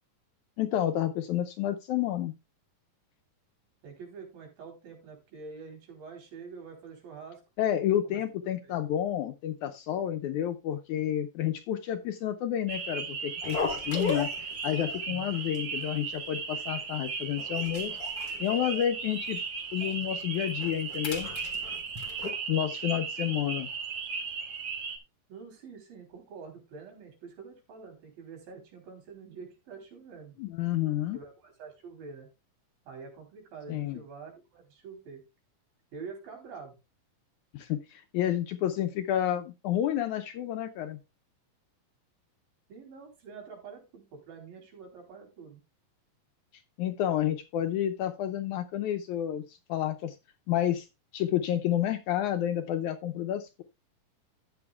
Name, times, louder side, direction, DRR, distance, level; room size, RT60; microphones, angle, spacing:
voice 1, 0.6-2.3 7.6-14.3 14.6-17.9 18.4-19.4 19.7-21.3 22.5-23.7 30.4-31.2 33.7-34.0 37.5-41.0 46.8-50.2 50.5-50.9 51.1-53.6, left 11 dB, 80° left, 7 dB, 1.8 m, -30 dB
voice 2, 3.8-7.4 8.0-8.2 8.6-8.8 15.1-15.4 25.3-30.4 31.1-32.3 32.9-35.2 35.9-36.8 42.7-45.6, right 5 dB, 90° right, 2 dB, 5.1 m, -46 dB
sound 1, 12.7-25.0, right 5 dB, 55° right, 1.9 m, -36 dB
sound 2, 13.4-15.0 15.3-15.6 15.8-15.9 16.5-17.0 17.4-19.4 19.8-19.9 20.4-22.3, left 4 dB, 60° left, 1.0 m, -37 dB
13.0 x 8.7 x 2.3 m, 0.25 s
omnidirectional pair, 4.0 m